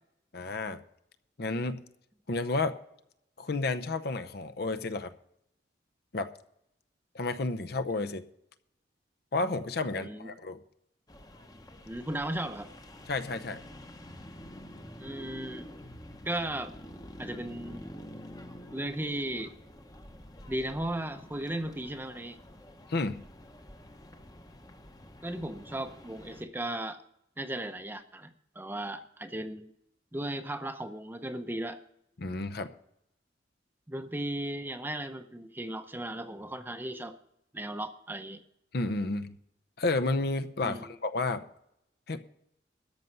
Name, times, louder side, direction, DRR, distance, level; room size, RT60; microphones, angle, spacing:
voice 1, 0.3-0.8 1.4-1.8 2.3-2.8 3.4-5.1 6.1-6.3 7.1-8.2 9.3-10.6 13.1-13.6 22.9-23.2 32.2-32.7 38.7-39.4 39.8-41.4 42.1-42.2, left 3 dB, 55° left, 9 dB, 0.7 m, -31 dB
voice 2, 9.9-10.3 11.9-12.7 15.0-15.7 16.2-16.7 17.2-17.8 18.7-19.5 20.5-22.4 25.2-27.0 27.4-29.7 30.1-31.8 33.9-37.2 37.5-38.4 40.6-40.9, right 1 dB, 10° right, 9 dB, 0.7 m, -36 dB
sound 1, 11.1-26.5, left 1 dB, 20° left, 0.9 m, -48 dB
13.5 x 5.5 x 9.3 m, 0.76 s
head